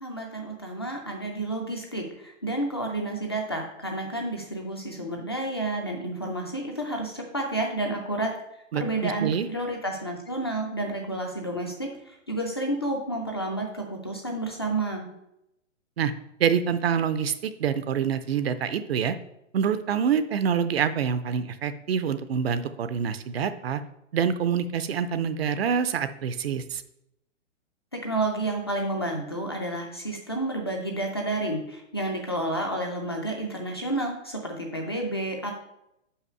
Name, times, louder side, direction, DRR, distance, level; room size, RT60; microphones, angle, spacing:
voice 1, 0.0-8.3 8.7-15.1 27.9-35.5, right 1 dB, 20° left, 1 dB, 0.4 m, -30 dB
voice 2, 8.7-9.5 16.0-16.1 16.4-19.2 19.5-23.8 24.1-26.8, right 7 dB, 55° right, 12 dB, 0.5 m, -26 dB
5.6 x 5.1 x 5.5 m, 0.81 s
hypercardioid pair, 160°, 38 cm